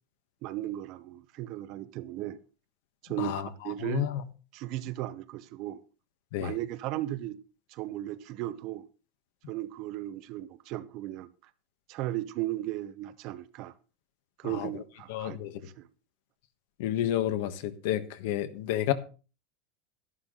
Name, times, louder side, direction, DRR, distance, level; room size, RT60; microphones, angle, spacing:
voice 1, 0.4-2.4 3.0-4.1 4.5-5.8 6.4-7.4 7.7-8.9 9.5-11.3 11.9-13.7 14.4-15.4 15.6-15.9, right 15 dB, 45° right, 0.8 m, -36 dB
voice 2, 3.2-3.5 3.8-4.1 6.3-6.6 14.6-14.7 15.1-15.6 16.8-18.9, left 12 dB, 70° left, 1.3 m, -30 dB
11.5 x 11.5 x 3.9 m
supercardioid pair, 165°, 0 cm